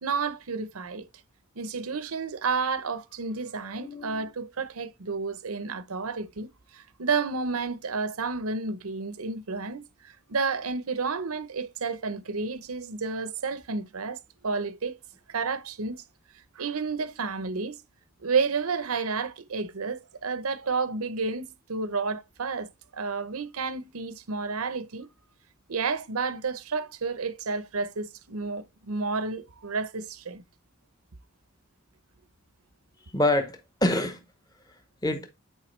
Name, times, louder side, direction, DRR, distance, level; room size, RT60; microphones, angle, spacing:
voice 1, 0.0-1.1 1.6-6.5 6.7-14.9 15.3-16.0 16.5-17.8 18.2-25.1 25.7-30.4, right 4 dB, 75° right, 0.8 m, -31 dB
voice 2, 3.6-4.3 33.1-34.2 35.0-35.3, left 1 dB, 15° left, 0.9 m, -26 dB
8.8 x 4.8 x 3.2 m
head